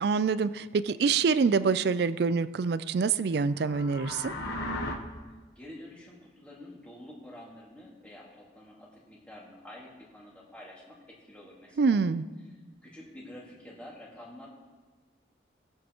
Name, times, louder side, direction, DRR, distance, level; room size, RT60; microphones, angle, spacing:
voice 1, 0.0-4.3 11.8-12.2, right 5 dB, 60° right, 15 dB, 0.4 m, -26 dB
sound 1, 3.5-4.9, left 1 dB, 65° left, 1.2 m, -35 dB
voice 2, 5.6-12.0 12.8-14.5, left 1 dB, 5° left, -5 dB, 2.1 m, -48 dB
19.5 x 7.7 x 3.0 m, 1.3 s
head